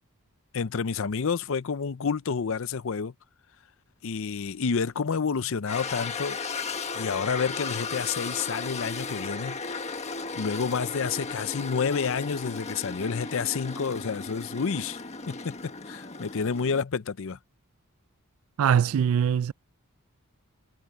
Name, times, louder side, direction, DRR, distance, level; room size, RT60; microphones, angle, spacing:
voice 1, 0.5-3.1 4.0-6.4 6.9-9.6 10.3-15.0 15.3-17.4, left 5 dB, 60° left, 0.6 m, -29 dB
sound 1, 5.7-16.8, left 4 dB, 30° left, 1.5 m, -35 dB
voice 2, 18.6-19.5, right 8 dB, 65° right, 0.3 m, -22 dB
head